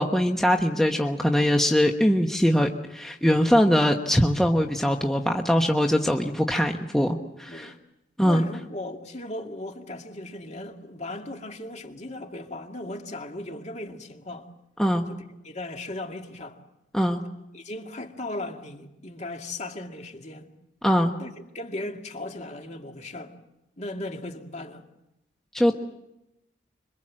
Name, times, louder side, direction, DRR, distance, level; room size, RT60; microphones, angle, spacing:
voice 1, 0.0-7.7 8.2-8.4 14.8-15.1 16.9-17.2 20.8-21.1 25.5-25.7, equal, 5° left, 1.2 m, -22 dB
voice 2, 8.2-14.5 15.1-16.6 17.5-20.5 21.2-23.3 23.8-24.8, left 1 dB, 40° left, 2.4 m, -37 dB
26.0 x 23.5 x 7.6 m
head